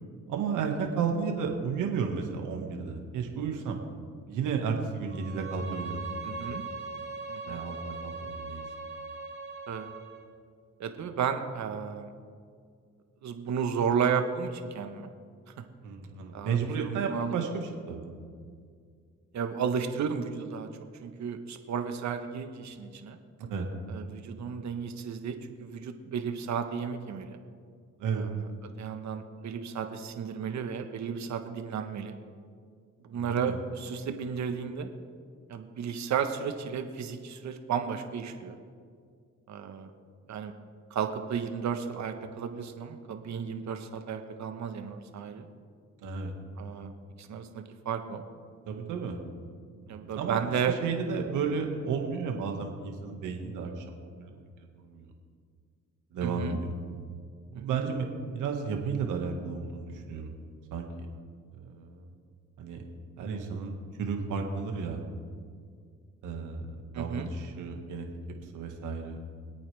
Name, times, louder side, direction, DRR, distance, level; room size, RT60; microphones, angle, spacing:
voice 1, 0.3-3.8 4.3-6.1 6.4-6.5 7.4-8.6 15.8-18.1 23.5-23.7 28.0-28.3 33.1-33.6 46.0-46.3 48.7-49.2 49.9-54.3 54.8-55.1 56.1-56.7 57.5-60.3 60.7-60.9 61.5-62.1 62.6-62.8 63.2-63.7 64.0-65.0 66.2-66.6 66.9-68.1 68.5-69.2, right 5 dB, 85° right, 2 dB, 1.9 m, -33 dB
Bowed string instrument, 5.1-10.3, right 3 dB, 35° right, 3.0 m, -40 dB
voice 2, 6.2-6.6 7.3-7.6 9.7-9.9 10.8-12.1 13.2-15.1 16.3-17.3 19.3-20.7 21.0-23.2 23.9-27.4 28.1-28.4 28.8-32.1 33.0-34.9 35.5-38.6 39.5-39.9 40.3-40.5 40.9-45.5 46.6-46.9 47.2-48.2 49.9-50.7 56.2-56.6 57.5-57.8 66.9-67.3, right 7 dB, 65° right, 7 dB, 1.3 m, -33 dB
25.0 x 8.7 x 3.5 m, 2.1 s
cardioid pair, 90°, 30 cm